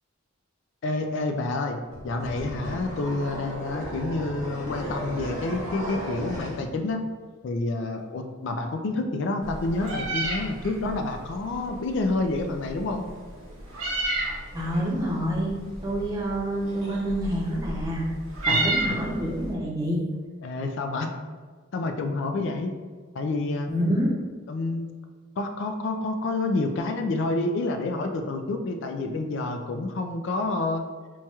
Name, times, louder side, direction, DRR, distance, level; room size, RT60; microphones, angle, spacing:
voice 1, 0.8-1.8 2.0-7.0 7.4-13.1 18.5-18.8 20.4-21.1 21.7-22.7 23.1-23.7 24.5-24.9 25.4-30.8, left 2 dB, 60° left, 5 dB, 0.3 m, -28 dB
sound 1, 1.9-6.6, equal, 75° left, 1.2 m, -35 dB
Meow, 9.4-19.5, right 2 dB, 75° right, 1.0 m, -32 dB
voice 2, 14.5-18.1 18.5-20.0 23.7-24.1, equal, 15° right, -4 dB, 0.6 m, -27 dB
4.5 x 2.3 x 2.8 m, 1.5 s
head